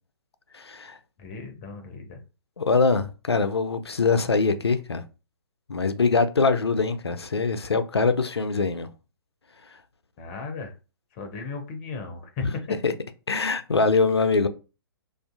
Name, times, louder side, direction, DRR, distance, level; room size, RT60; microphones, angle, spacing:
voice 1, 0.5-1.0 2.6-5.0 5.7-8.9 12.8-12.9 13.3-14.5, left 4 dB, 80° left, 0.4 m, -23 dB
voice 2, 1.2-2.2 10.2-10.7 11.1-12.8, left 4 dB, 25° left, 0.5 m, -36 dB
2.5 x 2.4 x 2.4 m
figure-of-eight pair, 120°, 13 cm